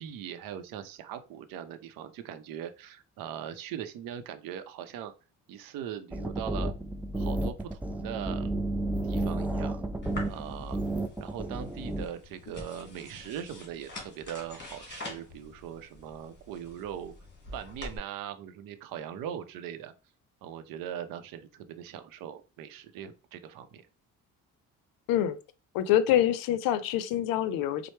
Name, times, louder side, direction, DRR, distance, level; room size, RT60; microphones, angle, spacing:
voice 1, 0.0-5.1 5.5-6.7 7.1-8.6 9.0-9.8 10.3-10.8 11.2-17.1 17.5-19.9 20.4-23.8, right 9 dB, 80° right, 0.6 m, -40 dB
sound 1, 6.1-12.1, right 1 dB, 5° right, 0.3 m, -32 dB
sound 2, 10.0-18.0, left 2 dB, 30° left, 1.5 m, -45 dB
voice 2, 25.7-27.9, left 11 dB, 85° left, 0.5 m, -26 dB
4.3 x 2.0 x 3.1 m
cardioid pair, 90°, 34 cm